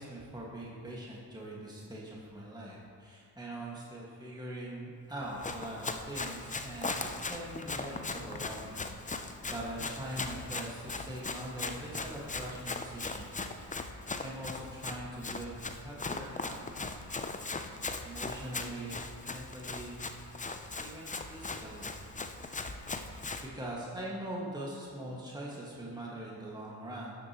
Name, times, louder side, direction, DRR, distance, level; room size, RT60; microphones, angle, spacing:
voice 1, 0.0-13.5 14.2-17.0 18.0-20.0 20.8-21.9 23.4-27.2, right 1 dB, 10° right, -5 dB, 1.9 m, -42 dB
Run, 5.2-23.5, left 3 dB, 15° left, 0.6 m, -39 dB
11.5 x 6.7 x 3.1 m, 2.3 s
supercardioid pair, 50°, 44 cm